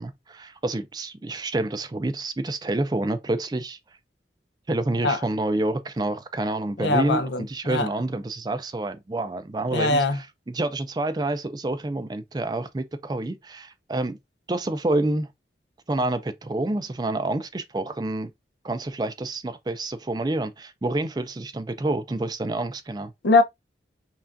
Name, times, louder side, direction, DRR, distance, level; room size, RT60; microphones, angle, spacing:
voice 1, 0.0-3.8 4.7-14.2 14.5-15.3 15.9-18.3 18.6-23.1, right 2 dB, 25° right, 0.4 m, -28 dB
voice 2, 6.8-7.9 9.7-10.2 23.2-23.4, left 3 dB, 80° left, 0.6 m, -21 dB
5.6 x 2.4 x 2.5 m
head